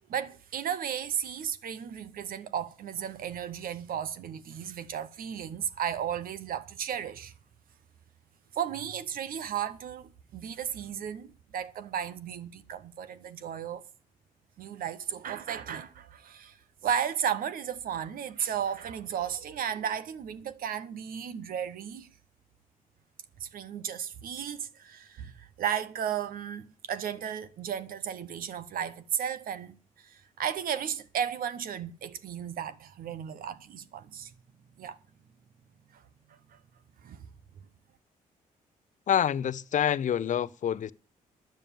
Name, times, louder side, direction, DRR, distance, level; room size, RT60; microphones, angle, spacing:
voice 1, 0.1-7.3 8.5-13.8 14.6-16.6 16.8-22.1 23.4-34.3 34.8-35.0 35.9-36.0 36.5-36.6 37.0-37.3, right 9 dB, 75° right, 0.9 m, -34 dB
voice 2, 39.1-40.9, left 9 dB, 55° left, 0.6 m, -27 dB
10.5 x 9.1 x 7.0 m
cardioid pair, 90°, 15 cm